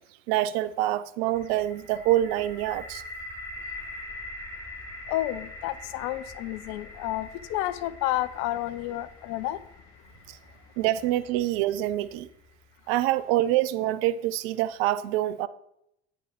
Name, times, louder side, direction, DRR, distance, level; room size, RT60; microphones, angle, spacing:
voice 1, 0.3-3.0 10.3-10.4 10.8-12.3 12.9-15.5, right 14 dB, 70° right, 0.6 m, -26 dB
sound 1, 1.3-13.2, left 2 dB, 10° left, 3.6 m, -44 dB
voice 2, 5.1-9.6, left 14 dB, 65° left, 0.7 m, -30 dB
10.0 x 5.3 x 5.0 m
hypercardioid pair, 70°, 31 cm